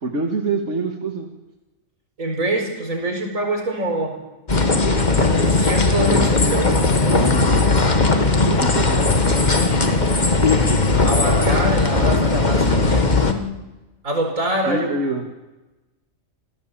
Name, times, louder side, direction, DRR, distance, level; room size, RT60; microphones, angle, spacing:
voice 1, 0.0-1.3 6.1-7.7 8.5-9.7 10.2-10.7 14.7-15.2, right 3 dB, 60° right, 2 dB, 2.2 m, -27 dB
voice 2, 2.2-4.2 5.0-6.8 11.0-13.4 14.0-14.9, right 1 dB, 80° right, 3 dB, 5.0 m, -25 dB
sound 1, 4.5-13.3, left 3 dB, 35° left, 1.6 m, -18 dB
27.5 x 17.5 x 7.5 m, 1.1 s
omnidirectional pair, 1.4 m